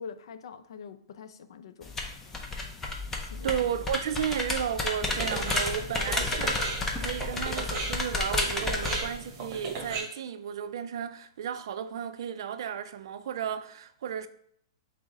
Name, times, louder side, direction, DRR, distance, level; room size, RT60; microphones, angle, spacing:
voice 1, 0.0-1.9 3.2-3.6, left 6 dB, 70° left, 0.4 m, -44 dB
sound 1, 1.8-9.0, left 3 dB, 10° left, 0.5 m, -31 dB
voice 2, 3.4-6.7 7.0-14.3, right 8 dB, 65° right, 0.3 m, -33 dB
sound 2, 5.0-10.0, right 3 dB, 30° right, 0.8 m, -37 dB
6.1 x 2.1 x 3.8 m
hypercardioid pair, 155°, 3 cm